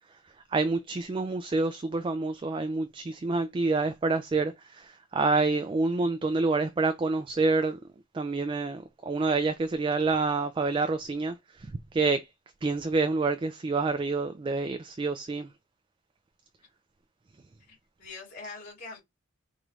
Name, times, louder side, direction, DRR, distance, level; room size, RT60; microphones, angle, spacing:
voice 1, 0.5-7.8 8.1-11.3 11.9-12.3 12.6-15.5, right 3 dB, 25° right, 0.3 m, -27 dB
voice 2, 17.7-19.0, left 3 dB, 55° left, 2.8 m, -43 dB
4.6 x 2.6 x 3.1 m
head